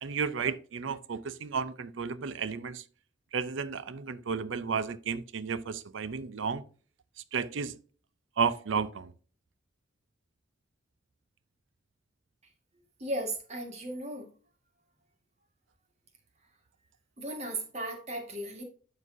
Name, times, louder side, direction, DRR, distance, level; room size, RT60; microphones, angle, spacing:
voice 1, 0.0-2.8 3.3-6.6 7.3-7.8 8.4-9.1, right 5 dB, 70° right, 0.5 m, -32 dB
voice 2, 13.0-14.3 17.2-18.6, right 1 dB, 35° right, 1.6 m, -36 dB
12.0 x 4.1 x 2.6 m
head